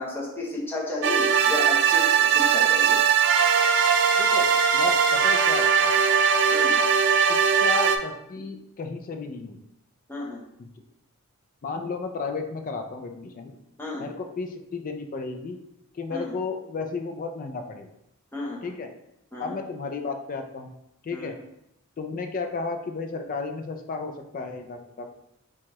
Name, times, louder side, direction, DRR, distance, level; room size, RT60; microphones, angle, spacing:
voice 1, 0.0-3.0 6.5-6.8 10.1-10.4 13.8-14.1 16.1-16.3 18.3-18.7 19.3-19.5 21.1-21.3, left 2 dB, 10° left, -5 dB, 0.8 m, -33 dB
sound 1, 1.0-8.0, right 7 dB, 55° right, 0.3 m, -20 dB
voice 2, 4.2-6.0 7.3-9.6 10.6-10.7 11.6-13.6 14.0-15.6 15.9-17.9 18.6-18.9 19.4-20.7 21.0-21.3 22.0-25.1, left 4 dB, 40° left, 5 dB, 0.4 m, -33 dB
4.4 x 2.3 x 3.0 m, 0.81 s
head